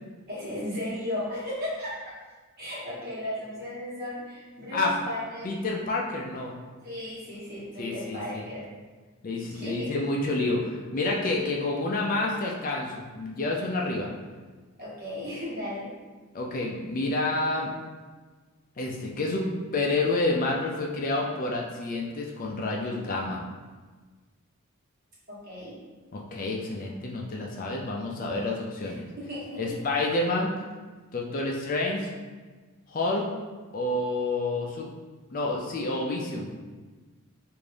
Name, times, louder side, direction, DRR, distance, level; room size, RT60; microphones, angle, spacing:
voice 1, 0.3-1.9 2.6-5.5 6.8-8.7 9.5-9.9 14.8-16.0 25.3-25.8 28.8-29.8, left 1 dB, 45° right, -7 dB, 1.2 m, -35 dB
voice 2, 5.4-6.5 7.8-8.4 9.2-14.1 16.3-17.7 18.8-19.5 19.7-23.4 26.1-29.1 29.6-30.5 31.1-32.1 32.9-33.3 33.7-34.9 35.3-36.5, left 2 dB, 40° left, -1 dB, 0.4 m, -29 dB
3.4 x 2.6 x 3.3 m, 1.3 s
head